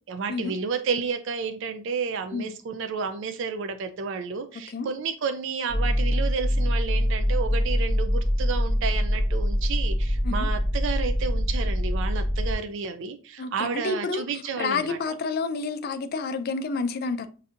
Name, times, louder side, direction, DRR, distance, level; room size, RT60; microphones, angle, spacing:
voice 1, 0.1-15.0, right 5 dB, 55° right, 0.3 m, -31 dB
sound 1, 5.7-12.6, equal, 30° right, 1.0 m, -24 dB
voice 2, 13.4-14.2 14.6-17.3, left 4 dB, 45° left, 0.3 m, -29 dB
5.5 x 2.6 x 2.5 m
head